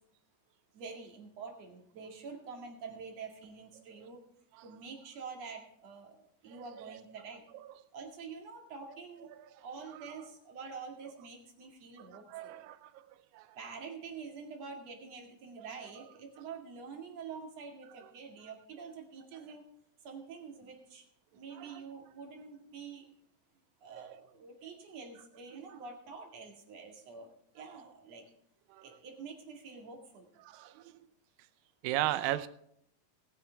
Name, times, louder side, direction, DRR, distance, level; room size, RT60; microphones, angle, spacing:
voice 1, 0.7-4.2 4.6-6.2 6.4-7.4 7.9-9.3 9.6-12.6 13.6-19.7 20.0-21.0 21.3-23.1 23.8-28.2 28.8-30.3, right 5 dB, 50° right, 2 dB, 3.0 m, -47 dB
voice 2, 12.3-13.1 13.3-13.5 15.6-15.7 21.6-21.7 28.7-28.8 30.4-30.9 31.8-32.5, right 14 dB, 80° right, 13 dB, 2.4 m, -35 dB
19.5 x 9.5 x 3.4 m, 0.71 s
omnidirectional pair, 4.1 m